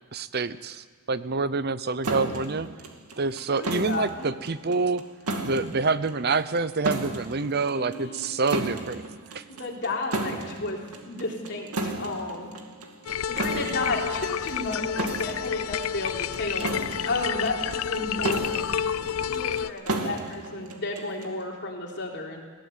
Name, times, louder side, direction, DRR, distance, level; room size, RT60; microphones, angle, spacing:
voice 1, 0.1-2.7 3.2-5.0 5.4-9.0 9.3-9.4, right 4 dB, 45° right, 14 dB, 0.7 m, -27 dB
sound 1, 2.0-21.4, right 2 dB, 90° right, 2.5 m, -34 dB
voice 2, 3.5-4.3 7.6-8.2 9.5-10.8 11.1-12.5 13.3-18.6 19.2-22.4, left 2 dB, 50° left, 0 dB, 3.6 m, -32 dB
sound 2, 13.0-19.7, left 8 dB, 70° left, 0.5 m, -30 dB
22.5 x 17.0 x 8.2 m, 1.5 s
head